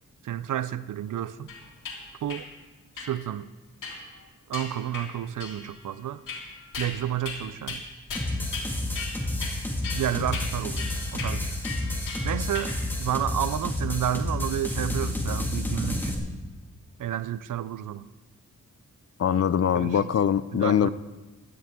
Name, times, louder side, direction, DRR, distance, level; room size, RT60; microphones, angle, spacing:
voice 1, 0.2-1.5 2.2-2.5 3.0-3.5 4.5-6.2 6.8-7.8 9.9-11.6 12.2-16.1 17.0-18.1 19.7-20.1 20.5-20.9, right 11 dB, 75° right, 0.5 m, -31 dB
sound 1, 1.5-2.0 2.3-2.4 3.0-3.1 3.8-4.2 4.5-5.1 5.4-5.8 6.3-6.9 7.2-7.4 7.7-7.8 8.1-8.7 8.9-9.5 9.8-12.8, left 4 dB, 90° left, 3.1 m, -37 dB
sound 2, 8.1-16.1, left 1 dB, 5° left, 2.1 m, -30 dB
voice 2, 19.2-20.9, left 8 dB, 50° left, 0.5 m, -23 dB
16.5 x 12.5 x 3.7 m
wide cardioid pair, 105°, 31 cm